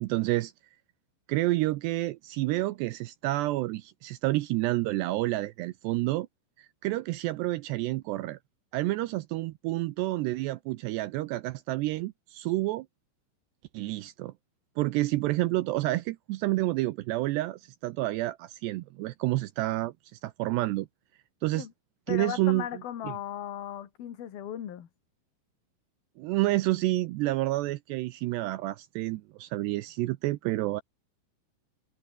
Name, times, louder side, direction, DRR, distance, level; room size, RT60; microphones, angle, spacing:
voice 1, 0.0-0.5 1.3-6.3 6.6-8.4 8.7-12.9 13.7-14.3 14.8-20.9 21.4-21.7 22.1-22.7 23.0-23.1 26.2-30.8, right 18 dB, 80° right, 2.5 m, -29 dB
voice 2, 22.1-24.9, left 10 dB, 55° left, 3.8 m, -37 dB
omnidirectional pair, 5.5 m